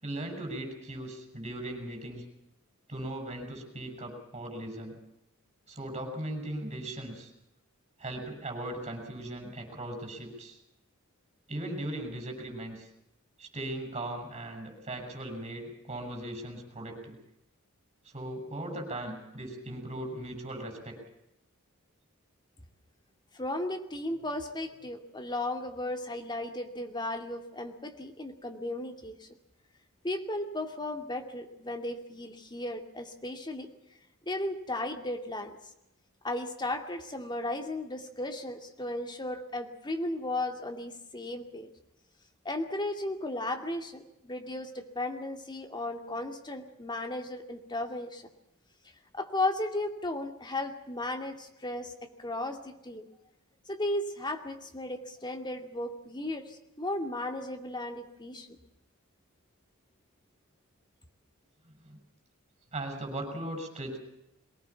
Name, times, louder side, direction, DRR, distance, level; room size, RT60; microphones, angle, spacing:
voice 1, 0.0-2.2 2.9-4.9 5.7-7.3 8.0-10.6 11.5-12.9 13.4-17.2 18.0-21.0 61.9-62.0 62.7-64.0, right 1 dB, 30° right, 3 dB, 8.0 m, -38 dB
voice 2, 23.3-29.3 30.0-33.7 34.3-35.6 36.2-41.7 42.4-48.3 49.1-53.0 53.7-58.6, left 1 dB, 20° left, 5 dB, 2.5 m, -35 dB
23.0 x 19.0 x 7.3 m, 0.85 s
head